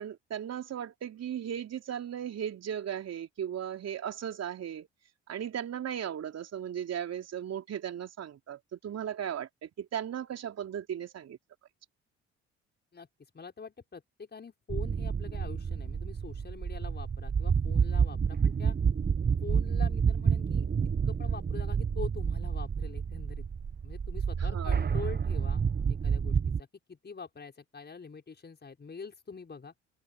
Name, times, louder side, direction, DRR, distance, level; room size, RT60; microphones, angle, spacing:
voice 1, 0.0-4.9 5.3-11.4 24.4-24.9, right 9 dB, 45° right, 4.0 m, -37 dB
voice 2, 13.3-18.8 19.4-20.7 21.1-23.5 23.8-25.6 25.9-29.7, left 5 dB, 30° left, 6.3 m, -45 dB
sound 1, 14.7-26.6, right 6 dB, 25° right, 1.5 m, -29 dB
open air
figure-of-eight pair, 55°, 35 cm